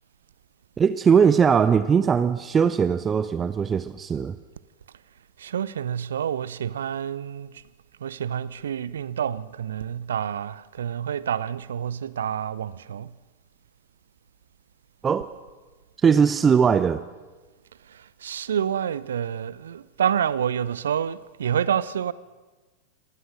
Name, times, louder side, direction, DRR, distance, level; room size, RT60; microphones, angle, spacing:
voice 1, 0.8-4.4 15.0-15.3 16.0-17.1, right 6 dB, 20° right, 0.7 m, -20 dB
voice 2, 5.4-7.5 8.0-13.1 18.2-22.1, right 8 dB, 65° right, 0.7 m, -28 dB
25.5 x 19.0 x 6.5 m
figure-of-eight pair, 90°, 0 cm